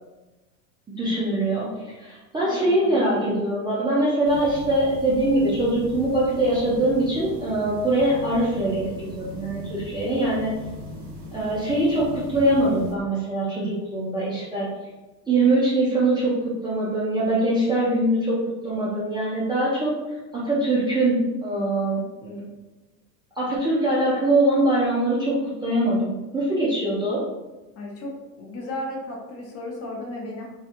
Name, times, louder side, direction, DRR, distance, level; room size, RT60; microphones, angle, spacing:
voice 1, 1.0-10.5 11.3-14.7 15.3-22.4 23.4-27.2, right 1 dB, 10° right, -8 dB, 0.4 m, -23 dB
voice 2, 2.4-3.2 27.8-28.1 28.4-30.5, left 1 dB, 30° left, -1 dB, 0.6 m, -34 dB
sound 1, 4.2-12.9, left 1 dB, 55° right, 1.1 m, -39 dB
2.7 x 2.3 x 2.5 m, 1.1 s
hypercardioid pair, 105°, 48 cm